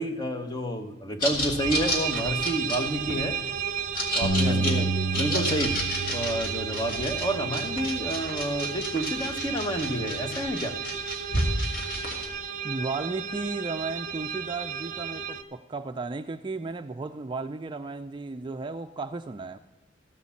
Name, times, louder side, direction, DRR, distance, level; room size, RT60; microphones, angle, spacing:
voice 1, 0.0-3.4 4.1-4.9 5.1-5.8 6.1-10.8, equal, 20° left, 5 dB, 1.1 m, -29 dB
sound 1, 1.2-12.3, left 1 dB, 50° left, 2.5 m, -32 dB
sound 2, 1.6-15.4, right 8 dB, 45° right, 0.8 m, -33 dB
Bass guitar, 4.2-8.7 9.3-10.5, right 2 dB, 70° left, 1.4 m, -31 dB
voice 2, 4.5-5.1 12.6-19.6, right 3 dB, 25° right, 8 dB, 0.3 m, -34 dB
15.5 x 6.7 x 7.1 m, 1.1 s
head